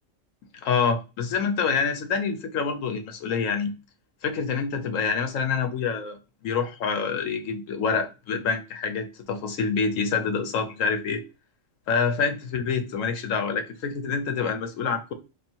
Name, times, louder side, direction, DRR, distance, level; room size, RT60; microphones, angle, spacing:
voice 1, 0.6-3.7 4.2-6.2 6.4-11.2 11.9-15.1, left 5 dB, 80° left, 1.1 m, -26 dB
3.5 x 2.4 x 4.4 m
omnidirectional pair, 1.3 m